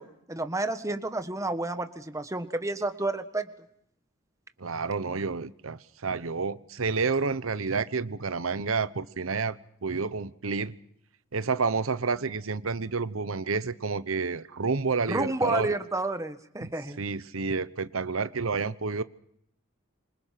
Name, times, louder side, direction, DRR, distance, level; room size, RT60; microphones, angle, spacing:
voice 1, 0.0-3.5 15.1-17.0, right 2 dB, 15° right, 9 dB, 1.5 m, -30 dB
voice 2, 4.6-9.6 9.8-10.7 11.3-15.7 17.0-19.0, right 4 dB, 90° right, 14 dB, 1.0 m, -29 dB
27.0 x 25.0 x 5.9 m, 0.70 s
head